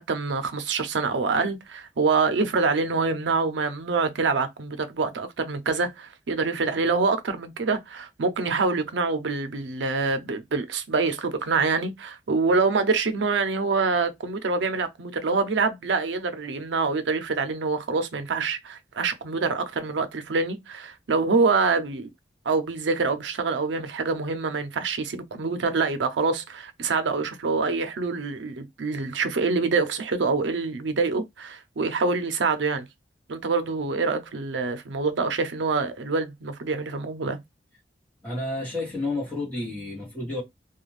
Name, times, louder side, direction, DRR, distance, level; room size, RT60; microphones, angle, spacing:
voice 1, 0.0-22.1 22.5-32.9 33.3-37.4, right 4 dB, 85° right, 0.5 m, -25 dB
voice 2, 38.2-40.4, left 2 dB, 10° left, 1.0 m, -30 dB
2.4 x 2.2 x 3.1 m
head